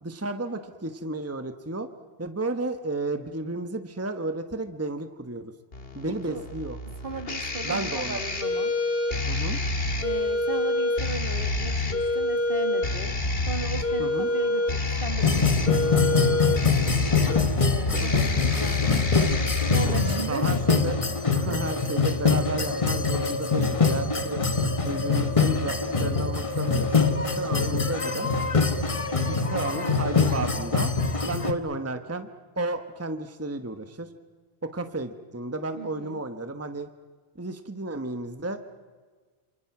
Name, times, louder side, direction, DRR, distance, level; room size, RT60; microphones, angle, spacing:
voice 1, 0.0-1.9 2.2-5.5 5.9-6.8 7.6-8.2 9.2-9.6 14.0-14.3 18.0-18.3 20.3-21.0 21.3-24.4 24.8-27.1 27.4-28.3 29.2-30.9 31.2-32.3 32.6-34.1 34.6-36.9 37.4-38.6, right 2 dB, 15° right, 8 dB, 1.1 m, -32 dB
sound 1, 5.7-20.2, left 2 dB, 65° left, 2.1 m, -27 dB
voice 2, 7.0-8.7 10.0-13.1 13.5-16.4 17.6-20.4 35.7-36.2, right 3 dB, 55° right, 6 dB, 2.5 m, -37 dB
sound 2, 13.2-31.1, equal, 10° left, 4.0 m, -37 dB
sound 3, 15.2-31.5, left 4 dB, 30° left, 1.2 m, -24 dB
28.0 x 27.5 x 6.0 m, 1.5 s
omnidirectional pair, 1.1 m